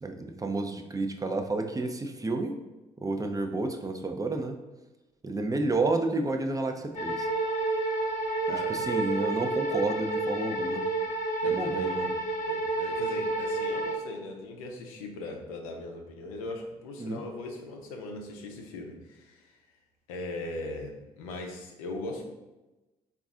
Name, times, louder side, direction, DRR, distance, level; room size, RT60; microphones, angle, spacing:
voice 1, 0.0-2.5 3.0-4.6 5.2-7.3 8.5-10.8 11.4-12.1 17.0-17.2, right 3 dB, 20° right, 5 dB, 0.5 m, -30 dB
sound 1, 6.9-14.0, right 2 dB, 40° left, 1.1 m, -30 dB
voice 2, 8.4-8.9 11.4-12.1 12.4-19.6 20.1-22.3, left 2 dB, 85° left, 2 dB, 0.5 m, -39 dB
3.9 x 2.4 x 3.6 m, 1.1 s
hypercardioid pair, 50°, 18 cm